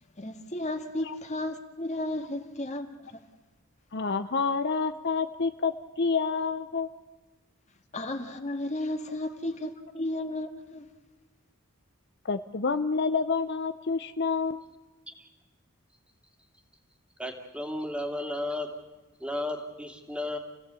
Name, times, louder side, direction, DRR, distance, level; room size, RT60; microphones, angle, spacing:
voice 1, 0.2-2.9 3.1-3.2 7.9-10.9, left 1 dB, 30° left, 6 dB, 1.9 m, -33 dB
voice 2, 3.9-6.9 12.2-14.6, left 4 dB, 50° left, 9 dB, 0.7 m, -28 dB
voice 3, 17.2-18.7 19.2-20.4, left 1 dB, 5° right, 4 dB, 2.6 m, -33 dB
29.0 x 17.0 x 8.3 m, 1.2 s
head